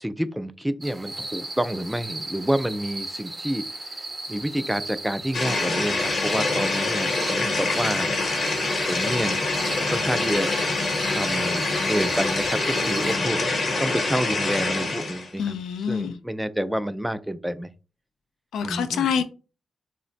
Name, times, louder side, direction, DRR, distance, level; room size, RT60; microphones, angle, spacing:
voice 1, 0.0-3.6 4.3-8.1 8.9-10.6 11.0-15.5 15.9-17.7 18.6-19.2, equal, 5° right, 0.3 m, -28 dB
sound 1, 0.8-13.2, right 2 dB, 35° right, 0.8 m, -36 dB
sound 2, 5.3-15.3, left 3 dB, 65° left, 0.9 m, -25 dB
voice 2, 15.4-16.2 18.5-19.2, left 7 dB, 90° left, 0.3 m, -26 dB
2.4 x 2.1 x 3.8 m
cardioid pair, 60°, 0 cm